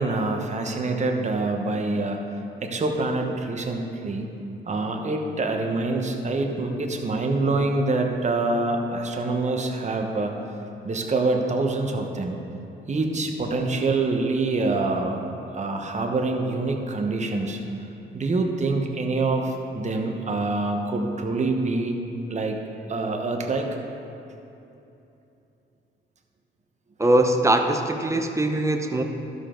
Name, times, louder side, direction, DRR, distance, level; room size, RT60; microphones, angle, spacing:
voice 1, 0.0-2.2 2.6-4.3 4.7-10.4 10.8-12.4 12.9-15.2 15.5-17.6 18.1-22.0 22.3-22.6 22.9-23.7, right 3 dB, 35° right, 2 dB, 1.1 m, -25 dB
voice 2, 27.0-29.0, right 1 dB, 15° right, 5 dB, 0.7 m, -21 dB
12.0 x 6.8 x 3.8 m, 2.9 s
cardioid pair, 90°, 20 cm